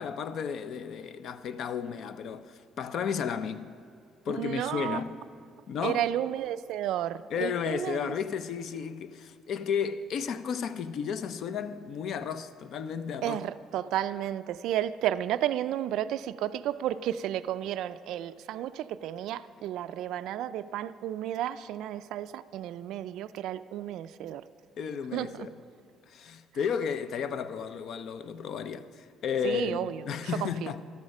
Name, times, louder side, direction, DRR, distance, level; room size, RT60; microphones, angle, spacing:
voice 1, 0.0-3.7 4.2-5.2 5.7-6.0 7.3-13.4 24.8-25.5 26.0-30.8, left 7 dB, 45° left, 0.5 m, -33 dB
voice 2, 4.3-5.0 5.8-8.1 13.2-24.4 25.1-25.3 29.4-30.0 30.4-30.7, right 11 dB, 60° right, 0.3 m, -32 dB
13.0 x 12.5 x 5.4 m
cardioid pair, 180°, 0 cm